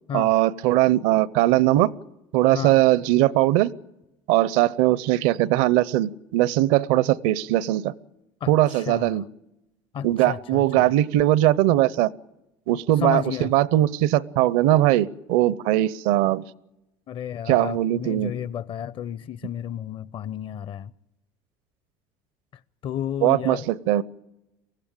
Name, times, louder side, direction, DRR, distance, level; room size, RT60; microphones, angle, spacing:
voice 1, 0.1-1.9 2.3-3.7 4.3-7.9 8.5-9.2 10.0-12.1 12.7-16.4 17.5-18.3 23.2-24.0, right 15 dB, 75° right, 0.7 m, -20 dB
voice 2, 8.4-9.2 9.9-10.9 13.0-13.5 17.1-20.9 22.8-23.6, left 9 dB, 45° left, 0.7 m, -32 dB
23.5 x 15.5 x 8.9 m
supercardioid pair, 95°, 12 cm